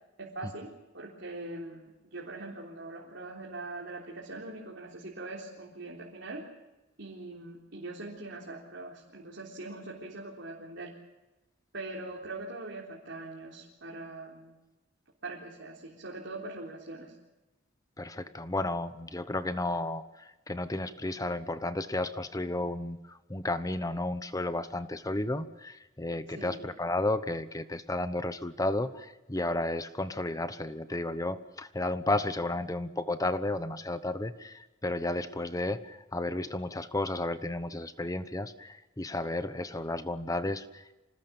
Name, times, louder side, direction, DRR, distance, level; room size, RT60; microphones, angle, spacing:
voice 1, 0.2-0.7 0.9-6.5 7.0-11.0 11.7-14.6 15.2-17.1 26.4-26.7, right 2 dB, 65° right, -3 dB, 3.8 m, -42 dB
voice 2, 18.0-40.9, left 2 dB, 20° left, 12 dB, 1.0 m, -33 dB
27.0 x 19.5 x 7.1 m, 1.1 s
head